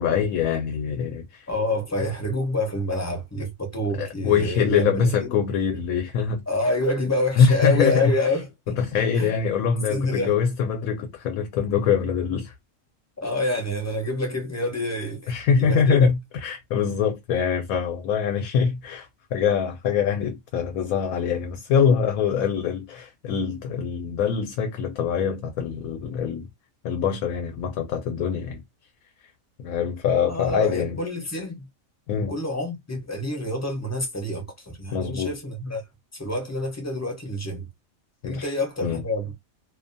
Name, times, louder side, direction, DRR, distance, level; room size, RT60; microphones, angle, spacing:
voice 1, 0.0-1.5 2.0-2.1 3.9-6.4 7.4-8.1 8.8-12.5 15.3-26.5 26.8-28.6 29.6-31.0 32.1-32.4 34.9-35.3 38.2-38.5 38.8-39.0, left 7 dB, 90° left, 1.0 m, -24 dB
voice 2, 1.5-5.3 6.5-8.8 9.2-9.4 9.9-10.3 13.2-16.1 30.2-31.7 32.3-35.8 36.1-37.7 38.2-39.3, left 1 dB, 20° left, 0.5 m, -27 dB
2.6 x 2.2 x 2.5 m
omnidirectional pair, 1.4 m